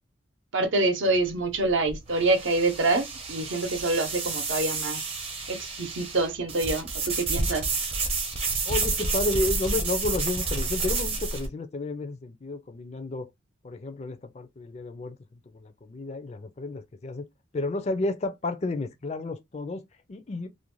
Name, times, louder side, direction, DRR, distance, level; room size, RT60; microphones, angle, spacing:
voice 1, 0.5-5.0 5.5-7.7, right 2 dB, 70° right, 0.7 m, -26 dB
sound 1, 1.1-11.5, right 3 dB, 30° right, 0.6 m, -30 dB
voice 2, 8.6-13.3 13.6-15.2 15.5-17.3 17.5-20.5, left 2 dB, 35° left, 0.4 m, -31 dB
2.5 x 2.1 x 3.0 m
head